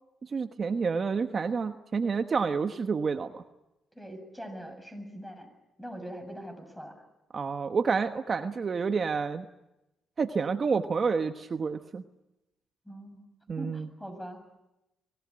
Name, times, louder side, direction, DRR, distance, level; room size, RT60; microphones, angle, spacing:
voice 1, 0.3-3.4 7.3-9.4 10.2-12.0 13.5-13.9, right 5 dB, 40° right, 7 dB, 1.2 m, -29 dB
voice 2, 3.9-5.5 5.8-7.0 12.9-13.3 13.6-14.4, equal, 5° left, 7 dB, 7.4 m, -42 dB
24.0 x 18.5 x 9.9 m, 0.94 s
cardioid pair, 90°, 0 cm